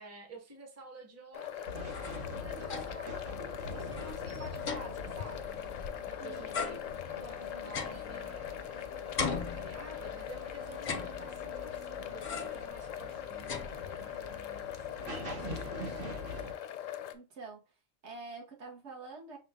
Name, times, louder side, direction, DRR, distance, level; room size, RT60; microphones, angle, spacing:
voice 1, 0.0-1.7 2.3-3.3 3.7-8.6 9.2-14.9 15.3-16.5, right 2 dB, 15° right, 0.7 m, -52 dB
sound 1, 1.3-17.1, left 11 dB, 85° left, 0.9 m, -41 dB
sound 2, 1.6-16.5, equal, 80° right, 1.9 m, -45 dB
sound 3, 1.7-3.1 3.5-3.6 3.9-6.1 6.5-8.7 9.2-10.2 10.7-11.6 12.2-12.7 13.1-14.2, left 5 dB, 50° left, 0.6 m, -40 dB
voice 2, 6.2-6.6 15.4-15.7 17.1-17.6 18.0-19.4, right 4 dB, 60° right, 1.4 m, -47 dB
5.5 x 2.3 x 3.5 m
omnidirectional pair, 1.3 m